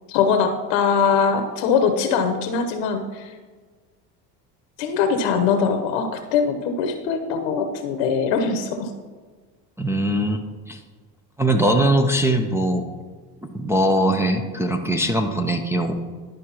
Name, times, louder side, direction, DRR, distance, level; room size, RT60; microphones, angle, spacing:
voice 1, 0.1-3.3 4.8-8.9, left 6 dB, 60° left, 7 dB, 0.9 m, -22 dB
voice 2, 9.8-10.8 11.4-12.8 13.4-15.9, right 1 dB, 5° right, 2 dB, 0.4 m, -21 dB
11.0 x 5.0 x 2.9 m, 1.4 s
hypercardioid pair, 80°, 49 cm